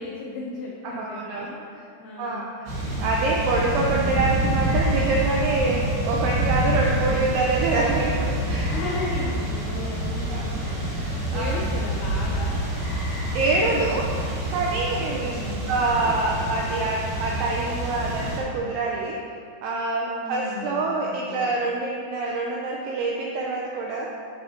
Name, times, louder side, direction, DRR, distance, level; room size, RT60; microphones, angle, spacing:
voice 1, 0.0-1.6 2.0-2.5 8.7-10.6 11.3-12.7 15.3-15.8 20.2-21.5, left 3 dB, 85° left, -3 dB, 2.2 m, -35 dB
voice 2, 0.8-1.5 2.2-2.7 3.0-8.7 10.3-11.6 13.3-14.1 14.5-15.4 15.7-19.2 19.6-24.1, right 3 dB, 85° right, -2 dB, 2.3 m, -26 dB
sound 1, 2.7-18.4, right 1 dB, 60° right, 3.2 m, -27 dB
11.5 x 4.9 x 2.8 m, 2.4 s
omnidirectional pair, 5.3 m